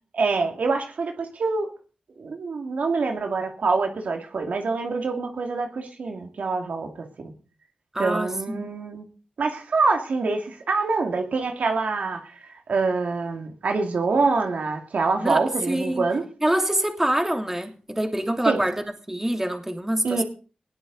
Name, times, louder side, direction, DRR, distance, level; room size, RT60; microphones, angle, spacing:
voice 1, 0.2-1.7 2.2-7.3 8.0-9.0 9.4-16.2 18.4-18.6 20.0-20.2, right 4 dB, 80° right, 2.6 m, -25 dB
voice 2, 7.9-8.7 15.2-16.0 16.4-20.2, right 1 dB, 15° right, 3.1 m, -25 dB
20.0 x 16.5 x 4.1 m
cardioid pair, 65°, 3 cm